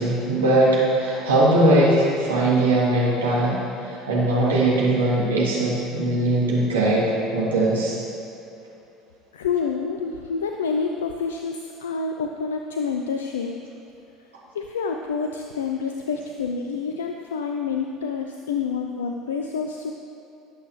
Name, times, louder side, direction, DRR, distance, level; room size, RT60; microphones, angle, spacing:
voice 1, 0.0-8.0, right 1 dB, 80° right, -6 dB, 2.7 m, -20 dB
voice 2, 9.3-13.6 14.5-19.9, left 5 dB, 75° left, 3 dB, 0.5 m, -28 dB
19.0 x 8.0 x 3.2 m, 2.8 s
figure-of-eight pair, 65°, 0 cm